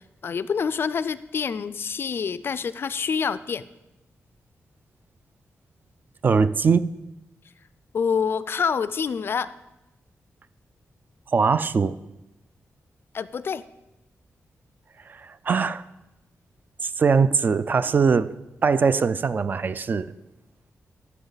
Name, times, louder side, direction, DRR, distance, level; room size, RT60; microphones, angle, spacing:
voice 1, 0.2-3.7 7.9-9.6 13.1-13.6, left 6 dB, 50° left, 16 dB, 0.3 m, -27 dB
voice 2, 6.2-6.9 11.3-12.0 15.2-15.8 16.8-18.3 18.6-20.1, right 5 dB, 40° right, 15 dB, 0.3 m, -21 dB
13.0 x 7.2 x 3.9 m, 0.98 s
wide cardioid pair, 175°, 5 cm